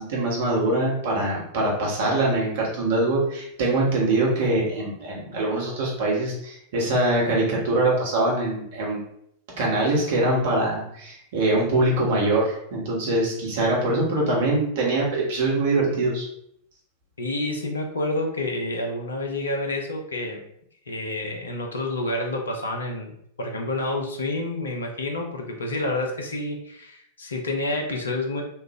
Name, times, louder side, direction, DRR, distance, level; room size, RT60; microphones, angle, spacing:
voice 1, 0.0-9.0 9.6-16.2, right 2 dB, 55° right, -3 dB, 1.2 m, -23 dB
voice 2, 17.2-20.4 20.9-28.4, left 2 dB, 70° left, 2 dB, 0.6 m, -29 dB
3.2 x 2.5 x 3.1 m, 0.71 s
figure-of-eight pair, 90°, 0 cm